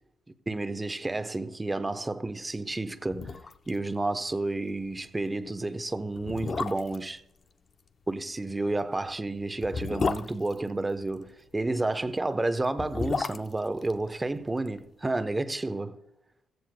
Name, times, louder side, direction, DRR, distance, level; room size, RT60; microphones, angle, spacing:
voice 1, 0.5-3.3 3.7-7.2 8.1-16.0, right 2 dB, 15° right, 0.9 m, -31 dB
sound 1, 2.7-2.8 3.1-3.8 4.0-4.1 4.5-4.7 5.4-5.5 6.2-7.1 8.6-11.3 12.6-14.8 15.1-15.2, left 4 dB, 40° left, 0.7 m, -33 dB
15.5 x 15.0 x 2.2 m
cardioid pair, 90°, 0 cm